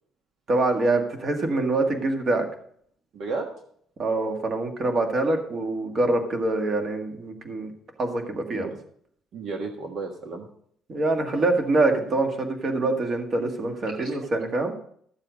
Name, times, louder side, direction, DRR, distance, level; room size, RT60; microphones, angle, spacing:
voice 1, 0.5-2.5 4.0-7.7 8.0-8.7 10.9-14.7, right 2 dB, 35° right, 4 dB, 1.9 m, -25 dB
voice 2, 3.1-3.5 8.5-8.7 9.3-10.4 13.9-14.3, right 4 dB, 55° right, 3 dB, 1.5 m, -33 dB
13.5 x 7.4 x 5.2 m, 0.64 s
cardioid pair, 145°, 0 cm